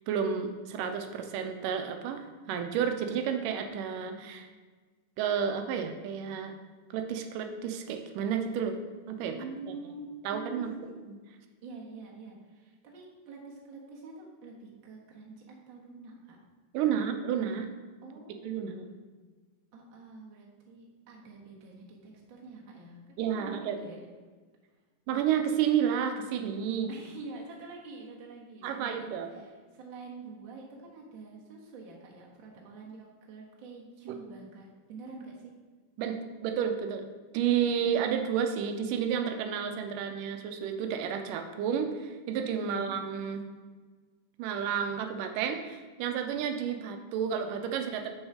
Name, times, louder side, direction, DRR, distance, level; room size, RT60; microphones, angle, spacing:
voice 1, 0.1-4.5 5.2-6.6 6.9-8.8 9.1-9.4 10.2-10.7 16.7-17.7 18.4-18.9 23.2-23.8 25.1-26.9 28.6-29.4 34.1-34.2 36.0-37.1 37.3-43.5 44.4-48.1, right 8 dB, 90° right, 6 dB, 2.3 m, -31 dB
voice 2, 9.3-11.0 11.6-16.4 16.8-17.1 18.0-18.4 19.7-24.1 26.9-35.5 42.6-43.0, right 3 dB, 50° right, -2 dB, 1.8 m, -46 dB
7.2 x 6.3 x 4.9 m, 1.4 s
omnidirectional pair, 3.6 m